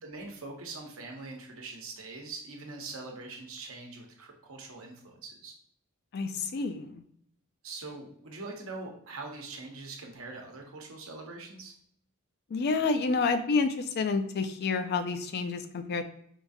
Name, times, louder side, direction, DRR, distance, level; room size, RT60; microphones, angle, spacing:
voice 1, 0.0-5.5 7.6-11.8, right 3 dB, 70° right, 1 dB, 0.9 m, -43 dB
voice 2, 6.1-7.0 12.5-16.0, left 4 dB, 50° left, 9 dB, 0.4 m, -29 dB
4.5 x 2.4 x 2.6 m, 0.67 s
head